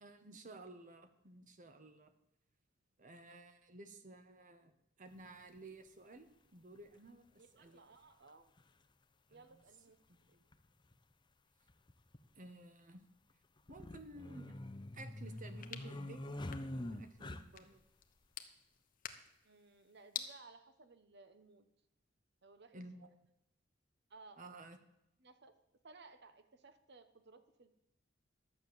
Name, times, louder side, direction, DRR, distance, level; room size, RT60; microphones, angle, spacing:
voice 1, 0.0-2.1 3.0-7.8 9.3-9.6 10.3-10.4 12.4-13.0 13.7-14.6 14.9-16.4 16.7-17.8 22.7-23.2 24.4-24.8, right 2 dB, 45° right, 8 dB, 1.0 m, -54 dB
sound 1, 5.2-5.3 6.7-6.8 8.3-8.4 8.6-8.7 10.5-10.6 10.9-11.0 11.7-12.2 13.6-17.8, left 1 dB, 25° left, 0.7 m, -45 dB
voice 2, 7.3-8.5 9.3-10.0 19.4-21.7 22.4-22.8 24.1-24.4 25.2-25.5 25.8-27.7, right 3 dB, 60° right, 10 dB, 1.2 m, -59 dB
sound 2, 15.1-20.3, left 8 dB, 45° left, 1.0 m, -50 dB
12.0 x 7.9 x 7.1 m, 0.83 s
head